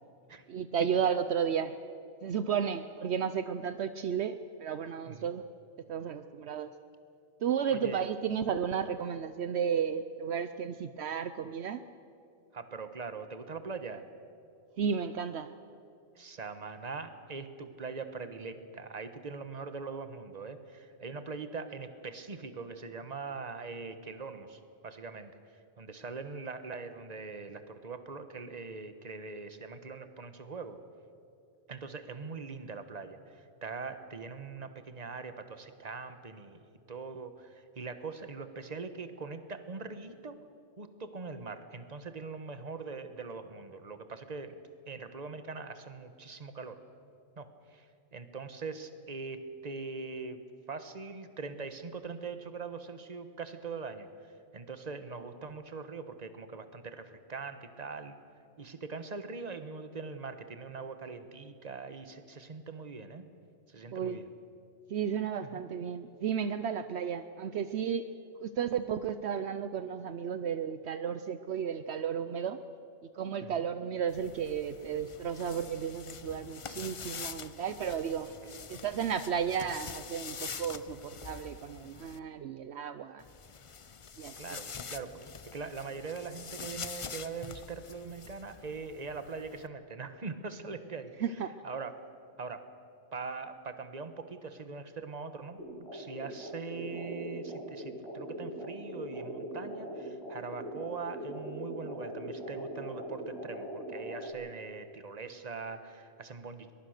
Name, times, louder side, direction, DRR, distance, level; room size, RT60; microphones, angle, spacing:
voice 1, 0.5-1.7 2.2-5.4 5.9-6.7 7.4-11.8 14.8-15.5 63.9-64.2 64.9-68.1 68.4-72.6 73.1-78.3 78.7-83.2 84.2-84.4 91.2-91.5, right 7 dB, 70° right, 11 dB, 0.9 m, -33 dB
voice 2, 7.7-8.0 12.5-14.1 16.1-30.8 31.7-36.6 36.9-40.4 40.8-44.6 44.9-46.8 47.4-50.4 50.7-58.1 58.6-63.2 63.7-64.3 65.4-65.6 73.4-73.6 78.4-78.7 84.4-85.2 85.5-91.9 92.4-92.7 93.1-95.6 95.9-106.7, right 4 dB, 35° right, 9 dB, 1.3 m, -42 dB
sound 1, 74.1-82.2 83.2-89.7, left 6 dB, 40° left, 0.5 m, -45 dB
sound 2, 95.6-104.3, right 1 dB, 70° left, 6.3 m, -41 dB
22.5 x 21.5 x 6.7 m, 2.6 s
omnidirectional pair, 1.2 m